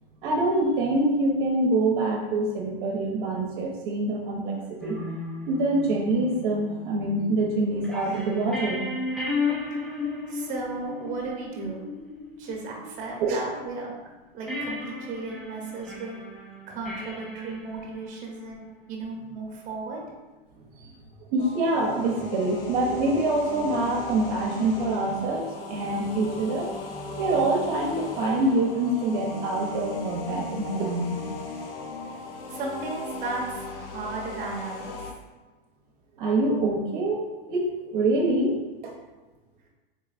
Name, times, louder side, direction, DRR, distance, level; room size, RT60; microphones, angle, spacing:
voice 1, 0.2-5.0 5.5-8.8 13.2-13.5 20.8-20.9 21.3-26.7 27.1-31.2 36.2-38.6 38.8-38.9, right 2 dB, 55° right, -1 dB, 0.7 m, -25 dB
sound 1, 4.8-13.9 14.5-18.7, left 3 dB, ahead, 0.4 m, -35 dB
voice 2, 10.3-11.8 12.4-13.9 14.3-16.2 16.7-18.6 18.9-20.0 32.5-35.0, right 3 dB, 25° right, -1 dB, 0.9 m, -35 dB
sound 2, 21.4-35.1, left 2 dB, 70° left, 0.7 m, -38 dB
3.8 x 3.3 x 2.4 m, 1.2 s
supercardioid pair, 135°, 29 cm